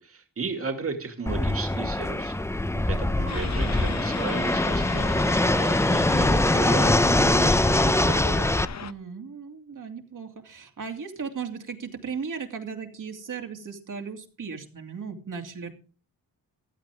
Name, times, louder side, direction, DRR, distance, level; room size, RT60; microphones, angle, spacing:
voice 1, 0.0-2.4 2.9-8.5, right 4 dB, 40° right, 6 dB, 2.2 m, -34 dB
Fixed-wing aircraft airplane, 1.3-8.6, left 1 dB, 10° left, 0.6 m, -23 dB
voice 2, 2.7-3.1 8.8-15.7, right 6 dB, 65° right, 4 dB, 2.7 m, -37 dB
sound 1, 3.3-8.9, left 7 dB, 55° left, 0.9 m, -35 dB
16.0 x 11.5 x 3.5 m, 0.37 s
wide cardioid pair, 95°, 34 cm